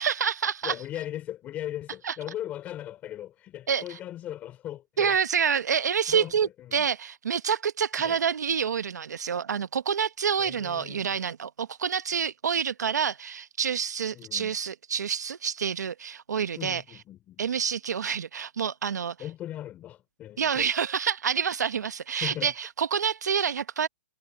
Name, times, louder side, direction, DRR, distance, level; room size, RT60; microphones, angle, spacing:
voice 1, 0.0-0.8 2.0-2.1 3.7-4.0 5.0-16.8 17.4-19.1 20.4-23.9, right 7 dB, 90° right, 1.2 m, -27 dB
voice 2, 0.6-5.2 6.0-6.8 8.0-8.2 10.4-11.2 14.1-14.5 16.6-17.4 19.2-20.7 22.2-22.5, left 12 dB, 15° left, 5.2 m, -38 dB
hypercardioid pair, 165°, 9 cm